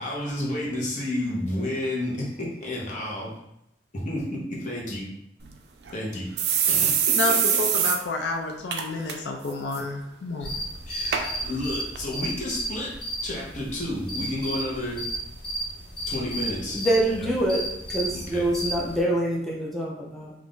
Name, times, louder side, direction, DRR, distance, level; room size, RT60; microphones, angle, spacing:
voice 1, 0.0-3.3 3.9-5.1 5.9-6.3 6.7-7.2 10.9-12.9 13.2-15.0 16.1-16.8 17.2-17.3 18.1-18.5, left 1 dB, 45° left, -3 dB, 0.8 m, -31 dB
sound 1, 5.4-5.5 5.9-6.0 6.4-8.0 8.3-8.4 8.7-9.1 9.5-9.8 10.5-10.6 11.1-11.2 12.0-12.1, right 8 dB, 65° right, 0.3 m, -23 dB
voice 2, 7.1-10.5, left 2 dB, 75° left, 2 dB, 0.4 m, -29 dB
sound 2, 10.4-19.0, right 1 dB, 30° left, 1.1 m, -34 dB
voice 3, 16.7-17.6 17.9-20.3, right 1 dB, ahead, -5 dB, 0.4 m, -25 dB
2.5 x 2.4 x 3.6 m, 0.79 s
head